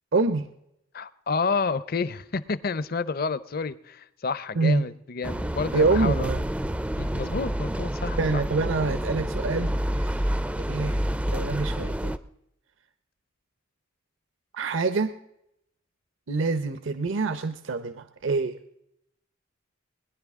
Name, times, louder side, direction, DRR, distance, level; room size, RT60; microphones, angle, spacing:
voice 1, 0.1-0.5 4.6-4.8 5.7-6.4 8.2-10.3 10.7-12.1 14.5-15.1 16.3-18.6, right 3 dB, 70° right, 0.7 m, -26 dB
voice 2, 0.9-6.3 7.0-8.4, left 4 dB, 45° left, 0.6 m, -30 dB
sound 1, 5.2-12.2, equal, 5° right, 0.4 m, -28 dB
21.5 x 10.5 x 3.6 m
head